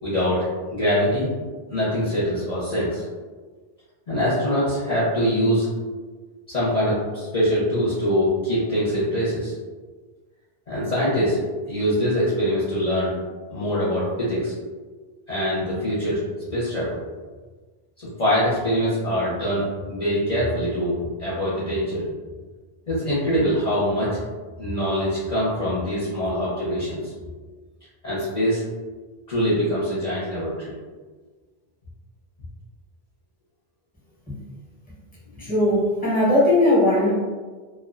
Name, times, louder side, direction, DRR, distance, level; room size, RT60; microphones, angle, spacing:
voice 1, 0.0-0.4 0.7-1.3 1.7-3.0 4.1-5.7 6.5-9.5 10.7-11.4 11.7-13.1 13.5-14.5 15.3-16.2 16.5-17.0 18.0-22.0 22.9-24.2 24.6-27.1 28.0-28.6 29.3-30.7 35.4-35.5, equal, 45° left, -11 dB, 0.8 m, -23 dB
voice 2, 35.4-37.1, left 1 dB, 10° left, -8 dB, 0.8 m, -19 dB
2.3 x 2.2 x 2.4 m, 1.4 s
omnidirectional pair, 1.1 m